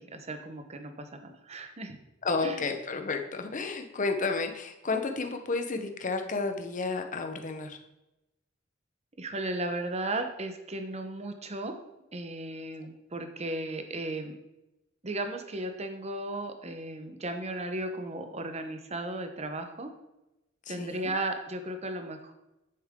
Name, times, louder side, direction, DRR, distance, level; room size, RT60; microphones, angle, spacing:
voice 1, 0.0-2.0 2.4-2.6 9.2-11.7 12.1-14.4 15.0-19.9 20.7-22.3, right 2 dB, 35° right, 7 dB, 1.0 m, -35 dB
voice 2, 2.2-7.8 20.7-21.1, left 3 dB, 40° left, 6 dB, 1.0 m, -31 dB
9.7 x 7.1 x 3.7 m, 0.95 s
head